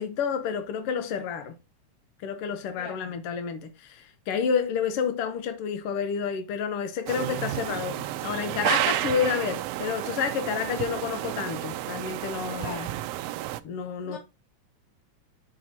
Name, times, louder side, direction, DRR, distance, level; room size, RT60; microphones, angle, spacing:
voice 1, 0.0-1.5 2.2-12.9 13.6-14.2, left 7 dB, 70° left, 1.5 m, -30 dB
sound 1, 7.1-13.6, right 14 dB, 80° right, 1.4 m, -31 dB
voice 2, 12.6-12.9 14.0-14.2, left 4 dB, 90° left, 4.6 m, -41 dB
7.7 x 6.7 x 2.7 m
omnidirectional pair, 3.4 m